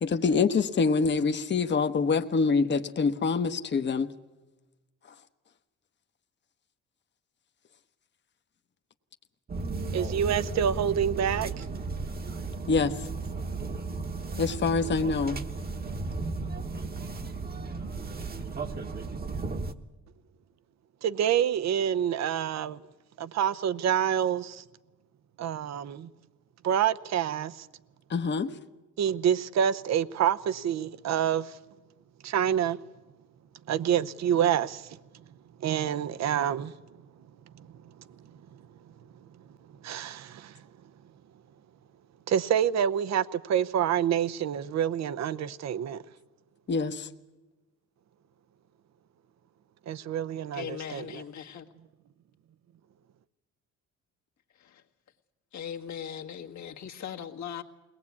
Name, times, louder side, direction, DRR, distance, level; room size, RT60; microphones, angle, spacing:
voice 1, 0.0-4.1 12.7-13.0 14.4-15.4 28.1-28.5 46.7-47.1, left 4 dB, 35° left, 1.0 m, -25 dB
sound 1, 9.5-19.7, right 3 dB, 30° right, 1.2 m, -35 dB
voice 2, 9.9-11.6 21.0-22.8 23.2-24.6 25.4-26.1 26.6-27.7 29.0-31.5 32.2-32.8 33.7-34.9 35.6-36.7 37.6-37.7 39.8-40.5 42.3-46.0 49.9-51.2, right 9 dB, 60° right, 0.8 m, -27 dB
voice 3, 50.5-51.7 54.6-54.8 55.5-57.6, left 8 dB, 70° left, 1.7 m, -39 dB
21.5 x 19.0 x 8.5 m
cardioid pair, 90°, 30 cm